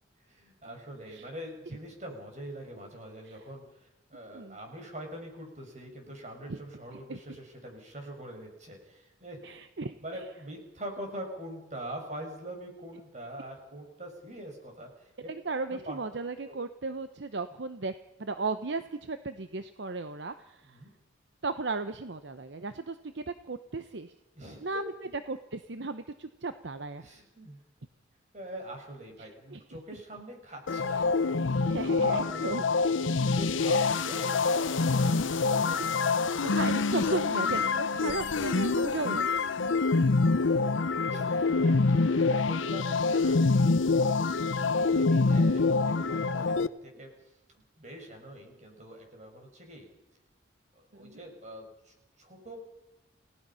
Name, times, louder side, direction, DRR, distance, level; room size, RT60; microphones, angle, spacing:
voice 1, 0.3-9.4 10.0-15.3 15.7-16.0 16.5-16.6 20.7-20.9 24.4-24.7 27.0-27.6 28.3-31.0 31.8-32.5 33.4-34.4 38.7-39.0 39.7-39.8 40.2-40.6 41.1-43.4 44.6-47.1 47.8-49.9 50.8-52.6, right 1 dB, 40° right, 3 dB, 5.6 m, -44 dB
voice 2, 9.4-9.9 15.3-17.9 18.2-20.8 21.4-24.1 24.6-24.9 25.3-27.1 29.2-29.6 30.9-31.1 31.6-32.6 35.0-35.8 36.0-39.4 51.0-51.2, right 3 dB, 65° right, 10 dB, 0.8 m, -36 dB
sound 1, 30.7-46.7, left 4 dB, 85° left, 0.8 m, -26 dB
29.5 x 18.0 x 5.7 m, 0.95 s
head